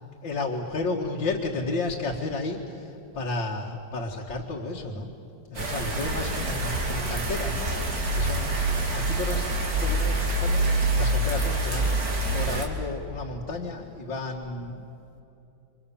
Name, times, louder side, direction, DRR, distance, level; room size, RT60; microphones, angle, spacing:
voice 1, 0.2-5.1 5.5-12.0 12.3-15.2, left 3 dB, 80° left, -2 dB, 2.6 m, -33 dB
sound 1, 5.5-12.6, right 2 dB, 55° right, 3.2 m, -26 dB
29.5 x 25.0 x 7.2 m, 2.9 s
omnidirectional pair, 2.0 m